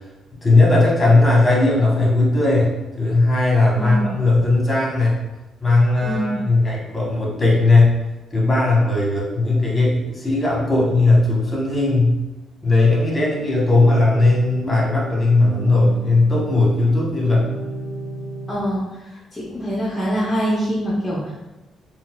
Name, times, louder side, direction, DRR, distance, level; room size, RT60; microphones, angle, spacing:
voice 1, 0.4-5.2 5.6-8.0 8.3-12.2 12.6-17.5, left 2 dB, 25° left, -4 dB, 1.0 m, -17 dB
voice 2, 3.8-4.1 6.0-6.5 18.5-21.3, equal, 10° left, -7 dB, 0.7 m, -24 dB
sound 1, 13.6-18.5, right 2 dB, 35° right, 0.9 m, -32 dB
4.0 x 2.0 x 2.3 m, 1.1 s
cardioid pair, 90°, 0 cm